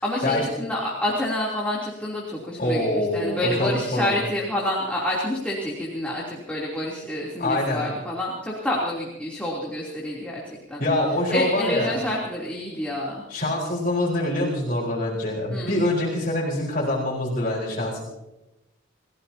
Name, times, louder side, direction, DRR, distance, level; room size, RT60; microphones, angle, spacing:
voice 1, 0.0-10.4 10.7-10.8 11.3-13.2 15.5-15.8, left 1 dB, 5° left, -5 dB, 3.2 m, -28 dB
voice 2, 2.6-4.1 7.4-7.8 10.8-12.0 13.3-18.0, left 1 dB, 45° left, -4 dB, 4.6 m, -25 dB
29.5 x 16.5 x 2.9 m, 0.95 s
head